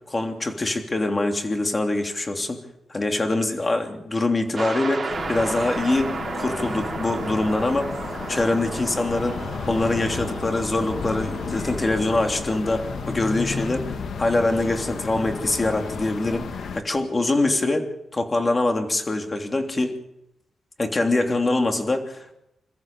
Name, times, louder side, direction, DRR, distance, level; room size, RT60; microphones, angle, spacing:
voice 1, 0.1-2.6 2.9-7.9 8.3-16.4 16.7-17.9 18.1-20.0 20.8-22.2, left 2 dB, 25° left, 4 dB, 3.2 m, -24 dB
sound 1, 4.6-13.9, right 4 dB, 40° right, 4.7 m, -34 dB
sound 2, 5.1-16.8, left 5 dB, 70° left, 1.6 m, -33 dB
27.5 x 14.5 x 7.2 m, 0.83 s
cardioid pair, 105°, 0 cm